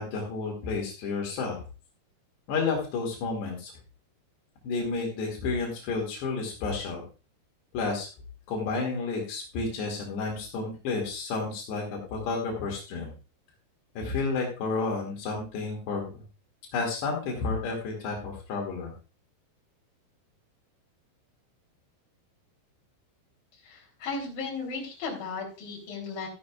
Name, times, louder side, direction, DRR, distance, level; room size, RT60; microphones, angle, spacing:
voice 1, 0.0-1.6 2.5-3.7 4.6-7.0 7.7-8.1 8.5-13.1 14.0-16.1 16.7-18.9, left 4 dB, 85° left, 0 dB, 4.5 m, -31 dB
voice 2, 23.6-26.3, left 4 dB, 60° left, -1 dB, 5.0 m, -35 dB
14.5 x 10.5 x 2.4 m, 0.33 s
omnidirectional pair, 4.8 m